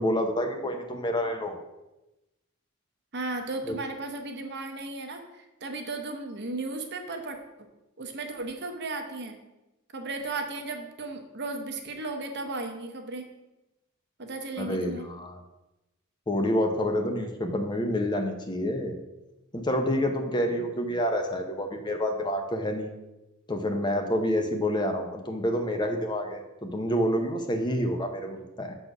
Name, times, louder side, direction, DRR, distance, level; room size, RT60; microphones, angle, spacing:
voice 1, 0.0-1.6 3.7-3.8 14.6-15.4 16.3-19.0 19.5-22.9 23.5-28.7, equal, 20° left, 4 dB, 0.7 m, -28 dB
voice 2, 3.1-7.4 8.0-9.4 9.9-13.3 14.2-15.0, right 3 dB, 55° right, 5 dB, 1.0 m, -35 dB
6.6 x 4.3 x 5.9 m, 0.98 s
head